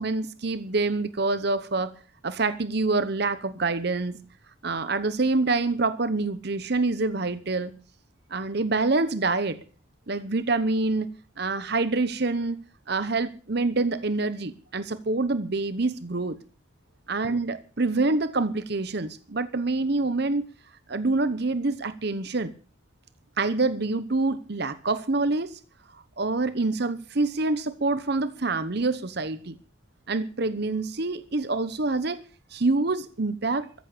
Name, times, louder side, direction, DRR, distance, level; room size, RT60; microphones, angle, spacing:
voice 1, 0.0-1.9 2.2-4.2 4.6-7.7 8.3-9.6 10.1-11.1 11.4-12.6 12.9-16.4 17.1-20.4 20.9-22.5 23.4-25.6 26.2-29.5 30.1-32.2 32.5-33.7, right 3 dB, 50° right, 0.9 m, -26 dB
15.0 x 10.5 x 6.8 m
head